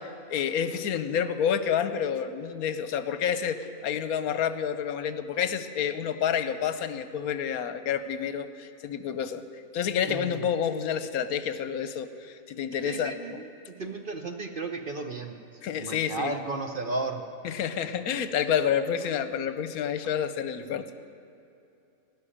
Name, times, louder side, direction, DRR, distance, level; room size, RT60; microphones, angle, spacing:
voice 1, 0.0-9.4 9.7-13.4 15.6-16.3 17.4-21.0, left 8 dB, 80° left, 11 dB, 1.2 m, -29 dB
voice 2, 10.1-10.4 12.8-15.4 15.8-17.2, right 3 dB, 50° right, 4 dB, 0.7 m, -34 dB
17.5 x 6.5 x 9.9 m, 2.8 s
omnidirectional pair, 1.5 m